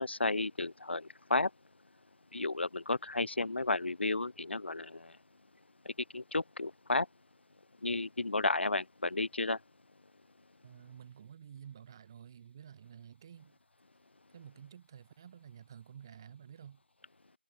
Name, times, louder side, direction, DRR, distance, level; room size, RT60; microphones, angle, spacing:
voice 1, 0.0-1.5 2.3-5.1 5.8-7.1 7.8-9.6, left 2 dB, 85° left, 1.2 m, -33 dB
voice 2, 10.6-13.5 14.3-16.8, right 8 dB, 25° right, 2.9 m, -51 dB
figure-of-eight pair, 170°, 6 cm